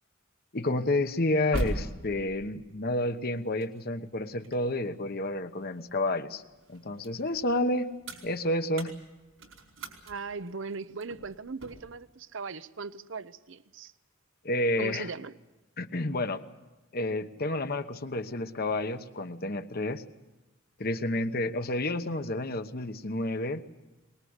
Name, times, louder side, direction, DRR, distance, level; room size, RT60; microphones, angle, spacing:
voice 1, 0.5-6.4 6.7-7.9 8.2-8.9 14.4-15.1 15.8-16.4 16.9-20.0 20.8-23.6, left 1 dB, 50° left, 9 dB, 1.1 m, -30 dB
sound 1, 1.1-6.1 6.5-12.0, right 1 dB, 80° right, 4.9 m, -40 dB
voice 2, 10.1-13.9 14.8-15.3, right 4 dB, 65° right, 14 dB, 0.7 m, -39 dB
23.0 x 20.5 x 8.1 m, 1.1 s
head